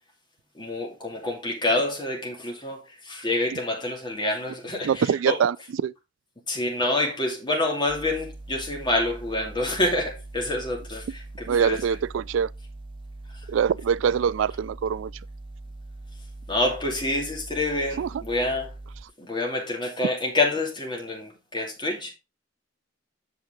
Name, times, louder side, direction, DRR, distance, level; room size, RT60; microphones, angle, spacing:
voice 1, 0.6-5.4 6.5-12.0 16.5-18.7 19.2-22.1, left 2 dB, 25° left, 2.6 m, -27 dB
voice 2, 4.8-5.6 5.8-5.9 11.5-12.5 13.5-15.1 18.0-18.1, right 7 dB, 85° right, 0.3 m, -23 dB
sound 1, 7.9-19.0, right 2 dB, 25° right, 0.8 m, -42 dB
8.2 x 6.4 x 3.6 m
head